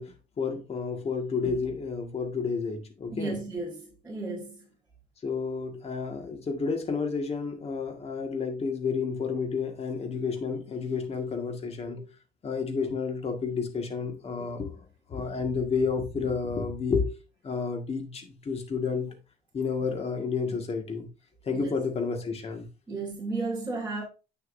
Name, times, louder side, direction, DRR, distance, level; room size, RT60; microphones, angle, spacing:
voice 1, 0.0-3.3 5.2-12.0 12.4-14.7 15.1-17.1 17.4-19.1 19.5-21.1 21.5-22.6, left 5 dB, 35° left, 1.8 m, -30 dB
voice 2, 3.1-4.7 21.5-21.8 22.9-24.0, right 3 dB, 10° right, 2.9 m, -34 dB
8.6 x 6.7 x 2.6 m
cardioid pair, 110°, 17 cm